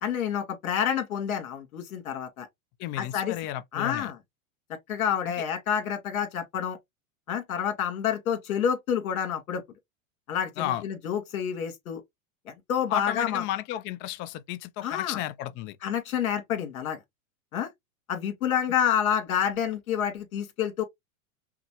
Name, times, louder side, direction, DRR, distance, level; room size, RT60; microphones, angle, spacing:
voice 1, 0.0-2.5 3.0-3.4 3.7-4.2 4.9-6.8 7.3-9.6 10.3-12.0 12.5-13.4 14.8-15.2 15.8-17.0 17.5-17.7 18.1-20.8, left 8 dB, 80° left, 2.0 m, -28 dB
voice 2, 2.8-4.1 10.6-10.8 12.9-15.8, left 13 dB, 30° left, 0.4 m, -33 dB
5.7 x 2.0 x 2.9 m
hypercardioid pair, 125°, 42 cm